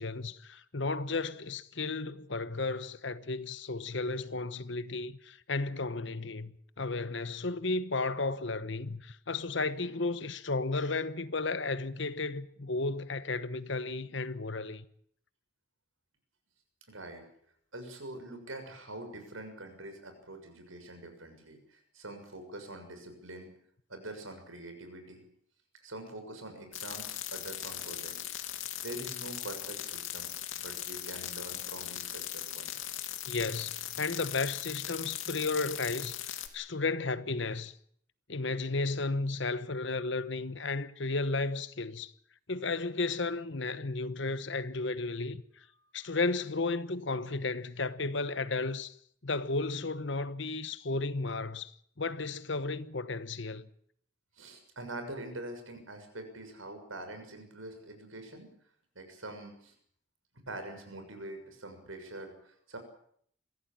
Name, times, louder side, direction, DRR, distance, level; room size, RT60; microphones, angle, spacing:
voice 1, 0.0-14.8 33.3-36.2 36.5-37.7 38.3-42.1 42.5-45.4 45.9-49.0 49.2-53.7, left 3 dB, 65° left, 1.1 m, -33 dB
voice 2, 16.9-17.3 17.7-23.5 23.9-25.2 25.8-32.8 45.8-45.9 54.3-58.5 58.9-59.7 60.5-62.8, right 1 dB, 85° right, 6.6 m, -45 dB
sound 1, 26.7-36.5, left 12 dB, 90° left, 2.6 m, -39 dB
23.5 x 16.0 x 8.9 m
head